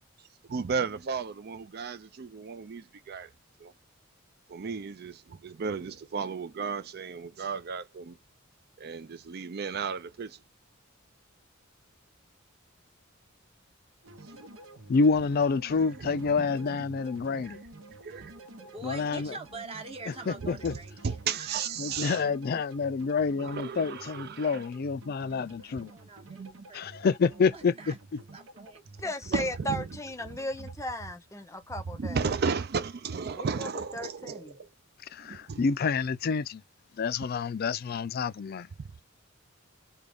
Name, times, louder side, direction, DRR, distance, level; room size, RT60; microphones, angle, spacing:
voice 1, 0.5-3.3 3.6-3.7 4.5-8.2 8.8-10.4 14.3-14.5 16.0-16.5 17.4-17.6 18.0-18.8 20.4-20.5 21.0-22.2 23.4-24.6 26.2-26.7 29.3-29.9 32.0-34.7 35.2-35.6 38.8-38.9, right 5 dB, 50° right, 0.4 m, -34 dB
sound 1, 14.0-30.8, right 2 dB, 85° right, 0.9 m, -50 dB
voice 2, 14.9-17.6 18.8-19.3 20.3-20.7 21.8-25.9 26.7-27.9 35.1-36.6 37.0-38.7, left 5 dB, 50° left, 0.4 m, -28 dB
voice 3, 18.7-22.2 25.6-27.0 27.3-28.0 28.3-28.8, right 3 dB, 30° right, 0.9 m, -45 dB
voice 4, 29.0-32.2 33.4-34.6, left 1 dB, 15° left, 0.6 m, -36 dB
3.7 x 2.3 x 3.5 m
head